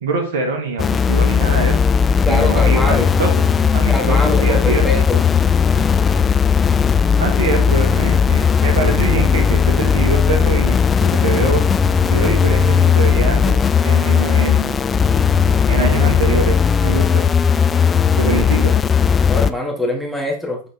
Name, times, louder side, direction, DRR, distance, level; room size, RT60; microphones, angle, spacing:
voice 1, 0.0-1.8 2.3-3.3 3.7-4.9 7.2-11.7 12.1-14.8 15.7-17.2 18.2-18.8, right 4 dB, 55° right, 3 dB, 1.6 m, -23 dB
sound 1, 0.8-19.5, left 6 dB, 20° left, 0.4 m, -16 dB
voice 2, 2.3-3.1 3.9-5.2 19.3-20.6, left 1 dB, ahead, 1 dB, 1.7 m, -22 dB
9.6 x 4.0 x 3.5 m, 0.38 s
figure-of-eight pair, 90°, 0 cm